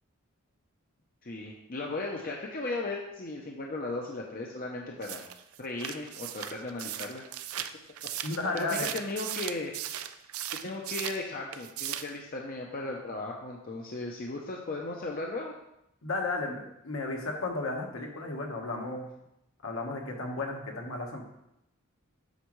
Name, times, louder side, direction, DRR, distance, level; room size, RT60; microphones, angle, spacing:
voice 1, 1.2-5.2 5.6-7.2 8.5-9.7 10.5-15.5, left 2 dB, 40° left, 0 dB, 0.7 m, -36 dB
sound 1, 5.0-11.2 11.5-12.2, right 11 dB, 80° right, 0.4 m, -37 dB
voice 2, 8.2-8.9 16.0-19.1 19.6-21.2, left 2 dB, 70° left, 1 dB, 1.3 m, -33 dB
8.0 x 6.2 x 3.1 m, 0.83 s
head